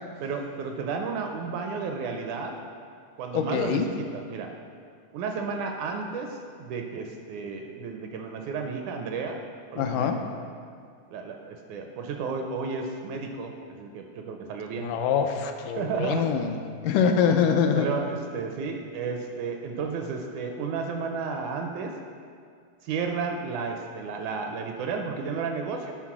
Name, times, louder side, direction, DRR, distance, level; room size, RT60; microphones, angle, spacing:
voice 1, 0.2-2.5 3.2-4.5 5.1-9.4 9.7-10.2 11.1-14.9 15.8-16.3 17.2-21.9 22.8-25.9, right 5 dB, 80° right, 3 dB, 1.9 m, -32 dB
voice 2, 3.3-3.9 9.8-10.2 14.8-16.6 16.8-17.9, left 7 dB, 85° left, 5 dB, 2.1 m, -24 dB
10.5 x 4.0 x 5.8 m, 2.2 s
omnidirectional pair, 3.7 m